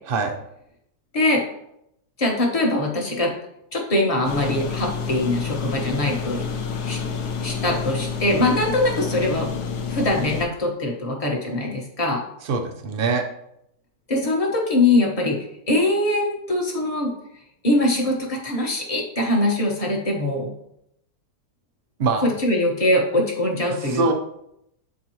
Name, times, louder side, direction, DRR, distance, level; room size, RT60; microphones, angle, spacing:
voice 1, 2.2-3.3 3.7-6.4 6.8-7.0 7.4-9.5 9.9-12.2 14.1-15.4 15.7-17.1 17.6-20.5 22.2-24.1, left 1 dB, 25° left, -1 dB, 1.1 m, -22 dB
sound 1, 4.2-10.5, left 5 dB, 75° left, 1.2 m, -29 dB
voice 2, 12.4-13.2 22.0-22.3 23.8-24.1, right 4 dB, 80° right, 4 dB, 0.5 m, -23 dB
8.5 x 4.1 x 3.0 m, 0.77 s
omnidirectional pair, 1.8 m